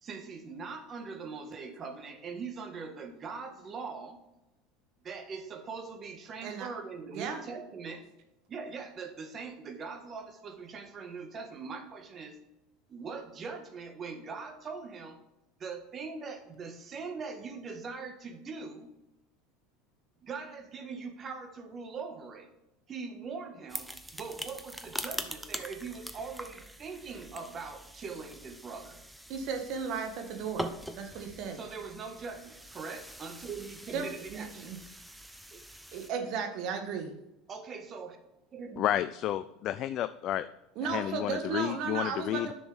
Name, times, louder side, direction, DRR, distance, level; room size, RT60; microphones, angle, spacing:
voice 1, 0.0-4.2 5.0-8.1 8.5-12.4 12.9-15.2 15.6-18.9 20.2-22.5 22.9-29.0 31.5-35.6 37.5-38.2 38.5-38.9, right 5 dB, 35° right, 6 dB, 1.5 m, -42 dB
voice 2, 7.0-7.4 29.3-31.6 33.9-34.8 35.9-37.2 40.7-42.5, right 5 dB, 60° right, 5 dB, 1.7 m, -35 dB
sound 1, 23.7-36.1, right 1 dB, 5° right, 0.8 m, -43 dB
voice 3, 38.8-40.5 40.9-42.5, left 12 dB, 50° left, 12 dB, 0.4 m, -31 dB
10.0 x 6.2 x 3.5 m, 0.91 s
supercardioid pair, 105°, 0 cm